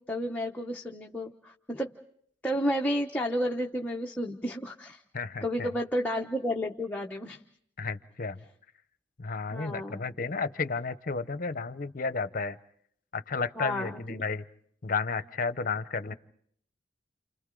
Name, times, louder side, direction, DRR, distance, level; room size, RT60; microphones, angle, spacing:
voice 1, 0.0-1.9 2.4-5.0 5.4-7.4 9.5-10.0 13.6-14.2, equal, 10° left, 0 dB, 0.9 m, -31 dB
voice 2, 5.1-5.7 7.8-8.4 9.2-12.6 13.1-14.4 14.8-16.1, left 4 dB, 50° left, 13 dB, 0.8 m, -32 dB
30.0 x 29.5 x 3.8 m, 0.67 s
head